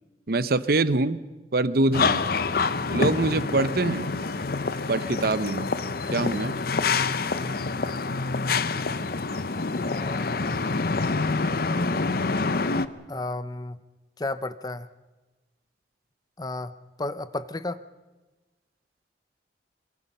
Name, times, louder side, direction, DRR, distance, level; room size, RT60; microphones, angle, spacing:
voice 1, 0.3-1.2 1.5-2.3 2.9-4.1 4.9-5.7 6.1-6.6, right 2 dB, 60° right, 14 dB, 0.8 m, -24 dB
sound 1, 1.9-12.9, left 4 dB, 55° left, 0.8 m, -26 dB
voice 2, 1.9-2.3 9.8-10.6 13.1-13.8 14.2-14.9 16.4-16.7 17.0-17.8, left 2 dB, 20° left, 14 dB, 0.7 m, -33 dB
24.0 x 22.5 x 5.5 m, 1.2 s
head